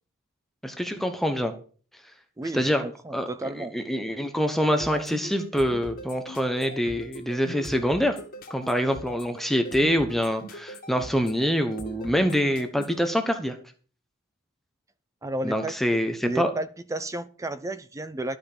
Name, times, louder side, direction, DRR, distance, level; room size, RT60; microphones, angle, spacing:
voice 1, 0.6-1.5 2.5-2.8 3.1-3.3 3.6-8.2 8.5-13.6 15.4-16.5, equal, ahead, 1.0 m, -25 dB
voice 2, 2.4-3.7 15.2-18.4, right 2 dB, 15° right, 0.4 m, -33 dB
sound 1, 4.8-13.1, equal, 45° left, 2.1 m, -41 dB
11.5 x 5.7 x 6.8 m
head